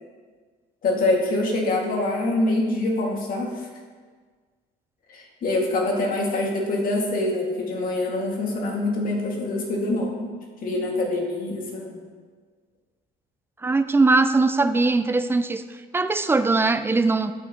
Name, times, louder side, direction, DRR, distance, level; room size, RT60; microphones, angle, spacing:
voice 1, 0.8-3.7 5.1-10.4 10.6-12.0, left 2 dB, 55° left, -1 dB, 2.2 m, -25 dB
voice 2, 13.6-15.6 15.9-17.3, right 3 dB, 15° right, 11 dB, 0.4 m, -20 dB
12.5 x 8.6 x 3.0 m, 1.6 s
cardioid pair, 110°, 17 cm